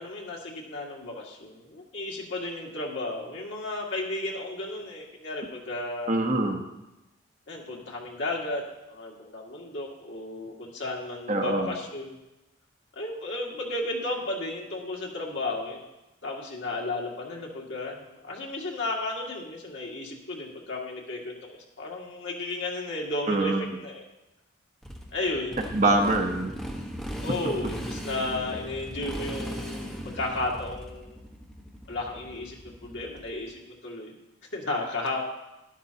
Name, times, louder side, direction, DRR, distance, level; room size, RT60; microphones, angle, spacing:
voice 1, 0.0-6.1 7.5-8.6 8.9-12.2 12.9-15.8 16.2-24.0 25.1-25.7 27.2-31.2 31.9-34.1 34.5-35.2, left 2 dB, 70° left, -2 dB, 2.0 m, -33 dB
voice 2, 6.1-6.6 11.3-11.7 23.3-23.6 25.7-26.5, right 2 dB, 40° right, 3 dB, 1.0 m, -24 dB
Motorcycle, 24.8-33.4, equal, 5° left, 1.3 m, -38 dB
12.0 x 11.0 x 2.9 m, 0.98 s
head